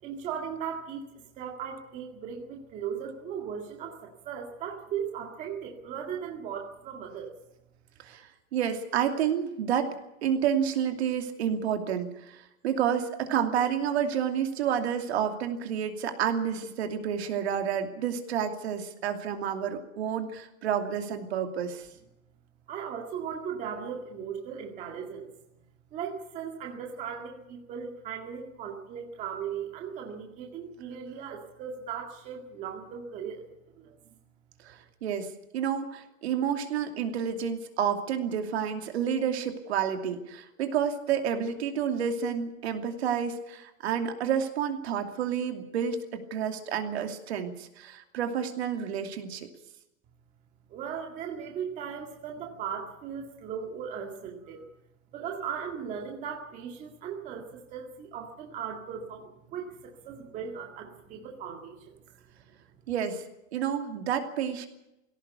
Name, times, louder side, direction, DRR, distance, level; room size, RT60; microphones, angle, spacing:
voice 1, 0.0-7.3 22.7-25.3 25.9-33.4 33.8-34.2 50.7-54.7 55.1-62.0, right 7 dB, 20° right, 1 dB, 2.1 m, -37 dB
voice 2, 8.0-21.9 34.6-35.3 35.5-49.5 62.9-63.2 63.5-64.7, right 8 dB, 50° right, 5 dB, 2.7 m, -30 dB
19.0 x 17.5 x 8.3 m, 0.89 s
supercardioid pair, 170°, 41 cm